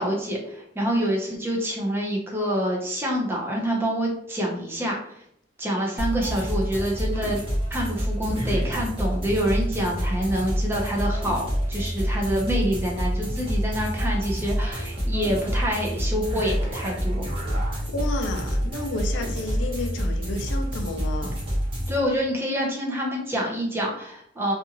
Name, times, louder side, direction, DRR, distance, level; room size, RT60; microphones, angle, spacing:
voice 1, 0.0-5.2 5.6-7.4 7.7-17.2 21.9-24.5, equal, 10° right, -2 dB, 0.6 m, -27 dB
sound 1, 6.0-22.0, equal, 30° right, 0.9 m, -27 dB
voice 2, 17.9-21.4, left 2 dB, 80° left, 5 dB, 0.5 m, -31 dB
2.6 x 2.4 x 2.8 m, 0.69 s
head